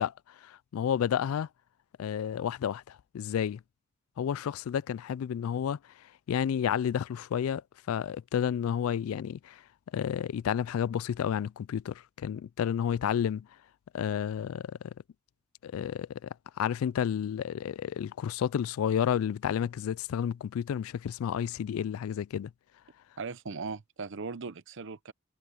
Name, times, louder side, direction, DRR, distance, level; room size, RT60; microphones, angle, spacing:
voice 1, 0.0-1.5 2.0-3.6 4.2-5.8 6.3-7.6 7.9-9.6 9.9-13.5 13.9-14.9 15.6-16.3 16.6-22.5, left 8 dB, 85° left, 0.3 m, -31 dB
voice 2, 23.2-25.1, right 4 dB, 60° right, 0.7 m, -38 dB
head